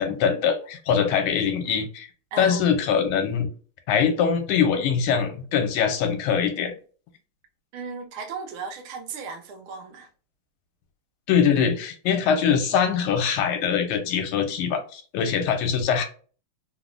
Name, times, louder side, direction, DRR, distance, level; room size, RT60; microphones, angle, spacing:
voice 1, 0.0-2.1 2.4-3.5 3.9-6.7 11.3-16.1, left 7 dB, 80° left, 1.4 m, -23 dB
voice 2, 2.3-2.6 7.7-10.1, right 5 dB, 80° right, 1.4 m, -36 dB
3.6 x 2.0 x 2.4 m
omnidirectional pair, 2.4 m